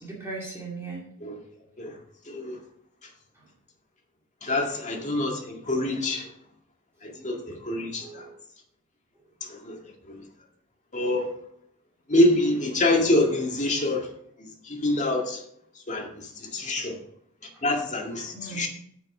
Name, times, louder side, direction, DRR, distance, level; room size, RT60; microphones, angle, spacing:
voice 1, 0.0-1.0 4.6-4.8 8.0-8.3 15.9-16.0 18.3-18.7, right 3 dB, 10° right, -5 dB, 2.4 m, -38 dB
voice 2, 2.3-2.6 4.4-6.3 7.0-8.2 9.4-9.8 10.1-10.2 10.9-11.3 12.1-14.1 14.4-15.4 15.9-17.0 17.6-18.7, left 1 dB, 35° left, 1 dB, 2.0 m, -26 dB
9.7 x 6.0 x 6.1 m, 0.68 s
head